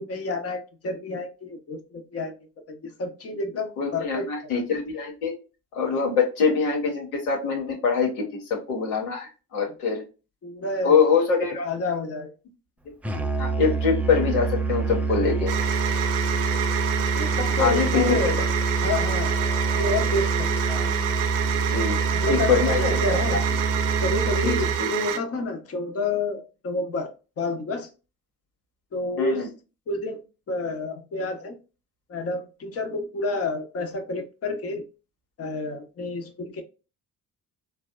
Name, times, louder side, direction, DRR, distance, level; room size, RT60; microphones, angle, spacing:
voice 1, 0.0-2.4 2.7-4.5 10.4-11.0 11.6-12.3 17.1-18.5 18.8-19.3 19.7-20.5 22.1-23.4 24.0-27.9 28.9-29.5 29.9-31.6 32.1-34.8 35.4-36.6, left 2 dB, 35° left, 0.8 m, -29 dB
voice 2, 3.8-5.3 5.7-10.0 10.8-11.7 13.1-15.5 17.6-18.2 21.7-22.0 22.3-23.2 24.4-24.9 29.2-29.5, left 5 dB, 85° left, 1.0 m, -24 dB
Musical instrument, 13.0-24.9, right 3 dB, 5° right, 0.3 m, -26 dB
sound 1, 15.5-25.2, right 10 dB, 70° right, 0.5 m, -28 dB
3.3 x 2.2 x 2.2 m
hypercardioid pair, 50°, 42 cm